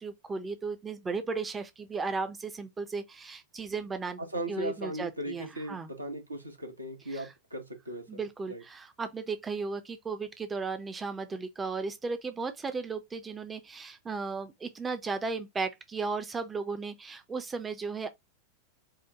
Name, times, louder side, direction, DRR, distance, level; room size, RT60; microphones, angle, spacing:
voice 1, 0.0-4.2 4.5-5.9 7.1-7.3 8.1-18.1, right 4 dB, 15° right, 0.5 m, -35 dB
voice 2, 4.3-8.2 8.5-8.6, right 1 dB, 85° right, 1.0 m, -38 dB
4.8 x 2.1 x 2.8 m
figure-of-eight pair, 90°, 0 cm